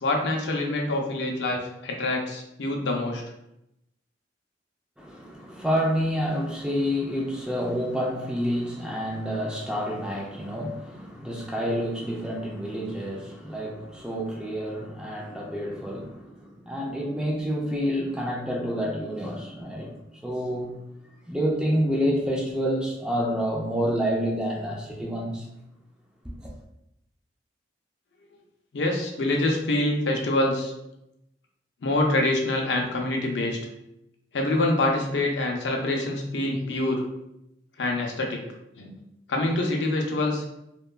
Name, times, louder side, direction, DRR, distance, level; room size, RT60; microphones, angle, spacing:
voice 1, 0.0-3.2 28.7-30.7 31.8-33.6 34.3-37.0 37.8-38.4 38.8-38.9 39.3-40.6, left 2 dB, 80° left, 0.5 m, -25 dB
voice 2, 5.0-20.8 21.3-25.5 26.4-26.5, equal, 5° right, 0.3 m, -28 dB
2.9 x 2.2 x 2.3 m
head